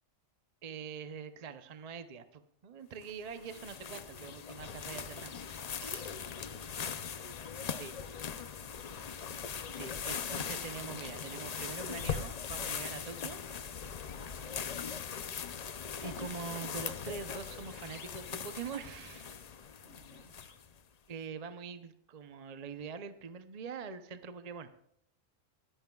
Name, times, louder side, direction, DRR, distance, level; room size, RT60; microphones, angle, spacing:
voice 1, 0.6-5.4 5.8-6.1 7.8-7.9 9.8-14.1 16.0-19.4 21.1-24.7, right 6 dB, 40° right, 10 dB, 0.6 m, -44 dB
sound 1, 3.0-20.8, left 7 dB, 55° left, 0.4 m, -40 dB
voice 2, 8.0-9.3 14.3-15.0 19.6-20.3, right 1 dB, 70° right, -1 dB, 5.5 m, -63 dB
22.5 x 11.0 x 2.3 m, 0.73 s
omnidirectional pair, 1.4 m